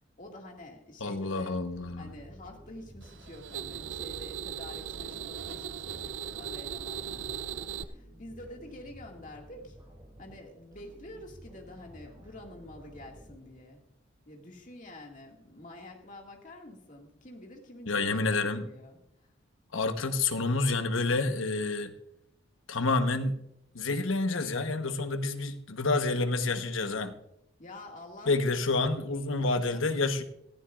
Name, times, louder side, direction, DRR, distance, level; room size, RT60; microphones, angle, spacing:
voice 1, 0.2-1.6 2.0-9.8 10.2-13.8 14.3-19.3 20.0-20.2 27.6-28.6 29.4-30.0, left 1 dB, 40° left, 1 dB, 2.1 m, -48 dB
voice 2, 1.0-2.1 17.9-18.7 19.7-21.9 22.7-23.4 23.7-27.1 28.3-30.2, left 3 dB, 85° left, 8 dB, 1.1 m, -28 dB
sound 1, 1.7-13.9, equal, 20° right, 5.5 m, -53 dB
sound 2, 3.0-7.8, right 8 dB, 60° right, 0.5 m, -38 dB
17.0 x 14.5 x 2.5 m, 0.77 s
head